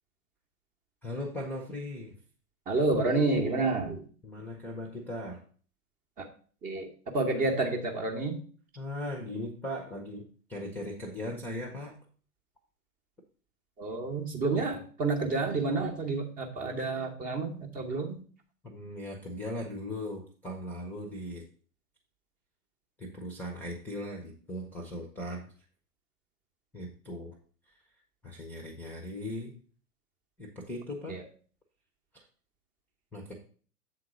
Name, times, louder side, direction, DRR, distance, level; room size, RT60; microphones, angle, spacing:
voice 1, 1.0-2.1 4.2-5.4 8.8-12.0 18.6-21.4 23.0-25.5 26.7-27.4 28.2-29.5 30.4-31.2 32.1-32.2 33.1-33.3, left 1 dB, 5° left, 2 dB, 0.9 m, -38 dB
voice 2, 2.7-4.0 6.2-6.3 6.6-8.4 13.8-18.2 31.1-31.2, right 3 dB, 20° right, 3 dB, 1.1 m, -29 dB
7.7 x 3.8 x 6.2 m, 0.42 s
figure-of-eight pair, 115°, 46 cm